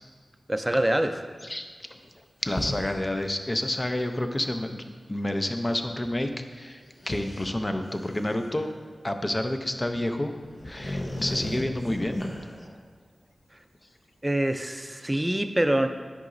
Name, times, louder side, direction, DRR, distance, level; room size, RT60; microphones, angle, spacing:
voice 1, 0.5-1.1 14.2-15.9, right 1 dB, 15° right, 7 dB, 0.5 m, -25 dB
voice 2, 2.4-8.7 9.0-10.3 10.6-12.2, left 1 dB, 30° left, 6 dB, 0.6 m, -29 dB
sound 1, 2.5-3.0 3.5-3.6 6.0-6.1 7.0-8.9 9.9-10.0 10.4-12.7, left 1 dB, 45° left, 1.0 m, -35 dB
10.5 x 4.9 x 2.6 m, 1.5 s
cardioid pair, 50°, 0 cm